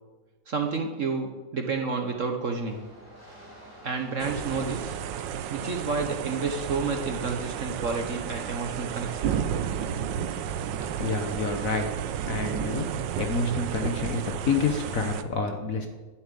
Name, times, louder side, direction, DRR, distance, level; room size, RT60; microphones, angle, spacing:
voice 1, 0.5-2.8 3.8-5.0 5.5-9.4, right 4 dB, 50° right, 4 dB, 1.2 m, -30 dB
sound 1, 2.6-9.5, right 1 dB, 10° right, 3.2 m, -49 dB
sound 2, 4.2-15.2, right 9 dB, 75° right, 1.3 m, -32 dB
voice 2, 11.0-11.9 12.3-12.9 13.2-15.9, left 4 dB, 50° left, 5 dB, 1.4 m, -28 dB
11.0 x 7.2 x 9.1 m, 1.3 s
omnidirectional pair, 2.1 m